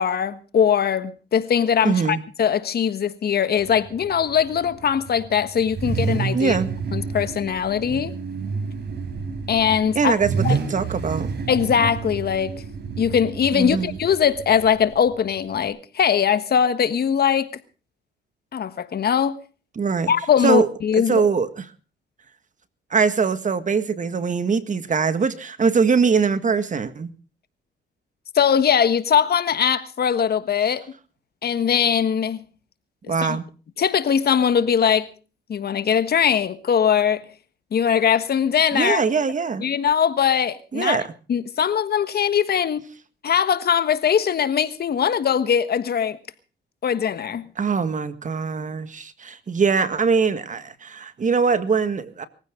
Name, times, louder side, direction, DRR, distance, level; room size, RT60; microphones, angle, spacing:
voice 1, 0.0-6.6 6.9-8.1 9.5-10.2 10.4-10.6 11.5-12.5 13.0-17.5 18.5-19.4 20.1-21.3 28.3-30.8 31.4-32.4 33.2-33.4 33.8-35.1 35.5-37.2 37.7-39.0 39.6-41.0 41.3-42.8 43.2-46.2 46.8-47.4, left 8 dB, 55° left, 1.4 m, -21 dB
voice 2, 1.8-2.2 6.3-6.7 10.0-11.3 13.5-14.0 19.8-20.1 20.4-20.7 20.9-21.6 22.9-27.1 33.1-33.4 38.7-39.6 40.7-41.0 47.6-52.3, right 5 dB, 40° right, 1.8 m, -22 dB
Car / Idling / Accelerating revving vroom, 3.6-15.7, right 5 dB, 55° right, 4.3 m, -30 dB
23.0 x 15.5 x 3.7 m
cardioid pair, 90°, 20 cm